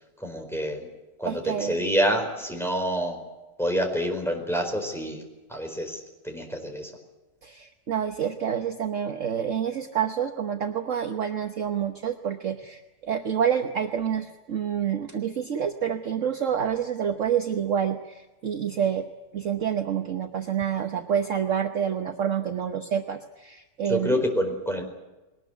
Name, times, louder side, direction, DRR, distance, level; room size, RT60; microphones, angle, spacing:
voice 1, 0.2-0.9 1.2-3.2 3.6-5.2 5.5-6.9 23.9-24.8, equal, ahead, 2 dB, 4.5 m, -27 dB
voice 2, 1.2-1.8 7.4-19.1 19.3-24.3, right 8 dB, 50° right, 5 dB, 1.3 m, -28 dB
21.0 x 19.5 x 9.4 m, 1.1 s
omnidirectional pair, 1.8 m